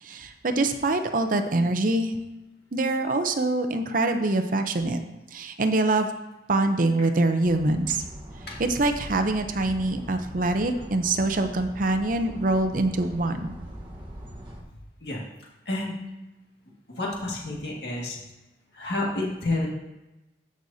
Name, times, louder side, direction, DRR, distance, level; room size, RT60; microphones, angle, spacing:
voice 1, 0.0-2.1 2.7-5.0 5.3-6.1 6.5-8.0 8.6-13.5, right 2 dB, 45° right, 7 dB, 0.6 m, -24 dB
sound 1, 7.4-14.6, equal, 25° right, 1.2 m, -41 dB
voice 2, 16.9-18.2 18.7-19.7, left 2 dB, 60° left, -3 dB, 1.9 m, -29 dB
13.5 x 6.3 x 2.7 m, 1.0 s
head